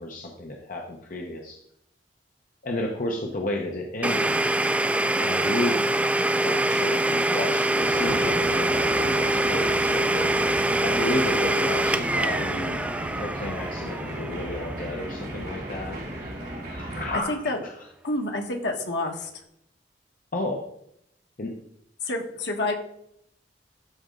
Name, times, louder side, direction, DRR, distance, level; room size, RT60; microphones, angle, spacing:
voice 1, 0.0-1.6 2.6-4.4 5.2-5.8 6.4-10.3 10.8-12.8 13.1-16.0 16.7-17.7 20.3-20.7 21.4-21.5, left 1 dB, 50° left, 0 dB, 0.9 m, -32 dB
Domestic sounds home sounds, 4.0-15.7, right 1 dB, 10° right, 0.4 m, -25 dB
sound 1, 7.8-17.2, right 1 dB, 65° right, 2.4 m, -35 dB
voice 2, 17.1-17.6 18.0-19.3 22.0-22.7, left 2 dB, 80° left, 3 dB, 1.5 m, -28 dB
12.5 x 4.3 x 3.8 m, 0.73 s
head